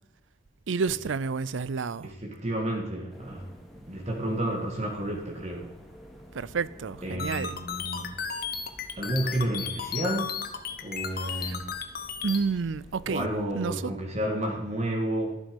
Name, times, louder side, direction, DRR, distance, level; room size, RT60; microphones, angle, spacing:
voice 1, 0.7-2.1 6.3-7.6 11.3-11.6 12.2-13.3 13.5-13.9, right 5 dB, 85° right, 0.5 m, -30 dB
voice 2, 2.0-3.5 3.9-5.7 7.0-8.5 9.0-10.4 10.8-11.7 13.0-15.4, right 1 dB, 35° right, 1.9 m, -31 dB
sound 1, 3.1-13.4, equal, ahead, 2.3 m, -51 dB
sound 2, 7.2-12.4, left 7 dB, 50° left, 1.2 m, -34 dB
12.5 x 11.5 x 5.3 m
head